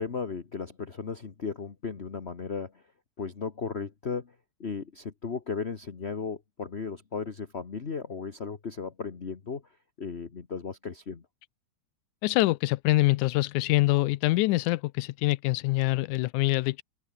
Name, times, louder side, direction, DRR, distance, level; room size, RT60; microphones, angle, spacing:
voice 1, 0.0-2.8 3.2-4.3 4.6-9.7 10.0-11.2, left 5 dB, 40° left, 0.9 m, -35 dB
voice 2, 12.2-16.8, left 19 dB, 85° left, 2.1 m, -25 dB
omnidirectional pair, 3.4 m